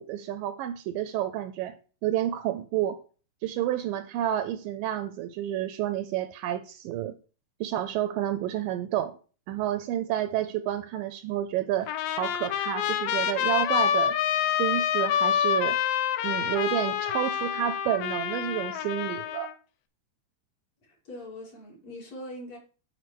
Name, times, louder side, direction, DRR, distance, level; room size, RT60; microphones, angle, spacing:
voice 1, 0.0-1.8 2.0-3.0 3.4-7.2 7.6-9.2 9.5-11.9 12.2-14.2 14.6-15.8 16.2-19.5, right 12 dB, 80° right, 2.0 m, -30 dB
Trumpet, 11.9-19.5, left 9 dB, 85° left, 2.7 m, -27 dB
voice 2, 20.8-22.6, left 1 dB, 45° left, 3.6 m, -42 dB
8.1 x 4.6 x 6.0 m
omnidirectional pair, 4.3 m